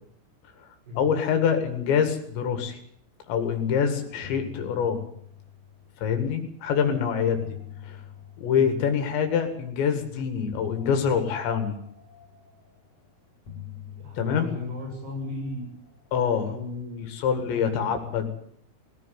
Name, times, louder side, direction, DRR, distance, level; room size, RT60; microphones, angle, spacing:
voice 1, 1.0-2.8 3.3-5.0 6.0-7.4 7.8-8.0 8.4-11.8 14.2-14.5 16.1-16.5 17.0-18.4, left 7 dB, 85° left, 6 dB, 4.3 m, -25 dB
sound 1, 3.6-6.4 7.1-9.5 10.5-13.0 13.4-16.0, left 10 dB, 40° left, 4.8 m, -45 dB
voice 2, 13.9-15.7 16.5-17.1 17.5-17.9, left 2 dB, 70° right, 1 dB, 9.5 m, -36 dB
20.0 x 15.5 x 9.4 m, 0.65 s
omnidirectional pair, 5.0 m